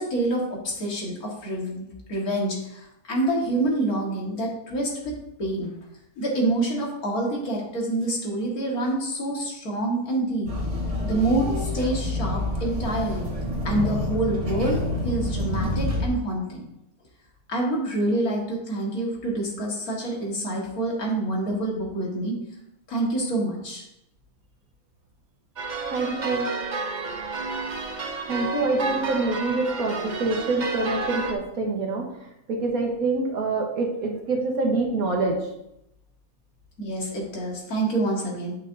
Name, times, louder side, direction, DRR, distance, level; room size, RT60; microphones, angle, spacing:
voice 1, 0.0-5.7 6.2-10.5 11.0-13.3 13.6-16.7 17.5-22.4 22.9-23.8 36.8-38.5, right 1 dB, 90° left, -2 dB, 2.2 m, -27 dB
sound 1, 10.5-16.1, left 1 dB, 25° right, 1.0 m, -28 dB
sound 2, 25.6-31.3, right 3 dB, 45° right, 0.6 m, -31 dB
voice 2, 25.9-26.5 28.3-35.4, right 3 dB, 75° right, 2 dB, 1.6 m, -26 dB
8.9 x 6.1 x 2.7 m, 0.84 s
omnidirectional pair, 1.5 m